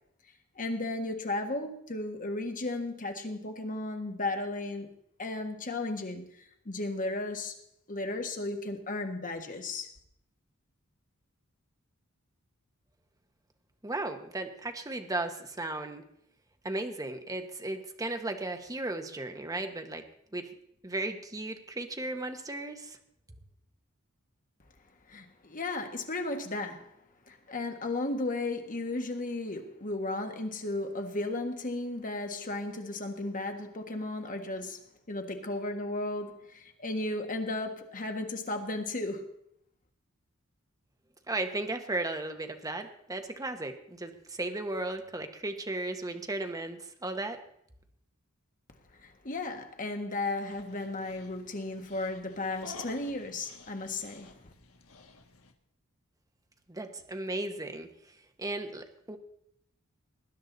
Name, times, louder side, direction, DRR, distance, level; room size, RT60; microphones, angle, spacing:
voice 1, 0.5-4.9 5.2-7.6 7.9-9.9 25.1-26.9 27.3-39.3 49.0-54.5, left 2 dB, 40° left, 1.6 m, -35 dB
voice 2, 13.8-16.0 16.6-20.0 20.3-20.5 20.8-23.0 41.3-47.4 56.7-57.9 58.4-59.2, right 2 dB, 15° right, 1.2 m, -35 dB
Dog, 50.5-55.5, left 2 dB, 80° left, 1.5 m, -50 dB
19.5 x 10.0 x 4.1 m
head